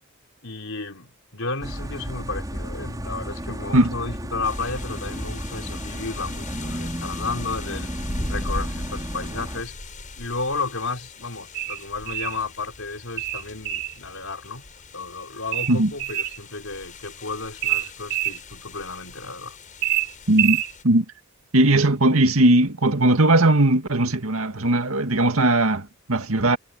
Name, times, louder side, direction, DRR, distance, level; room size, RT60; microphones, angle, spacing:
voice 1, 0.4-7.9 8.3-9.8 10.2-14.6 14.9-19.6, left 3 dB, 70° left, 5.4 m, -33 dB
sound 1, 1.6-9.6, equal, 20° right, 5.9 m, -33 dB
sound 2, 4.4-20.8, left 2 dB, 40° left, 7.2 m, -39 dB
sound 3, 11.5-12.4 13.2-14.0 15.5-16.4 17.6-18.4 19.8-20.7, right 13 dB, 55° right, 3.8 m, -25 dB
voice 2, 20.3-21.1 21.5-26.6, right 1 dB, 85° right, 2.1 m, -19 dB
head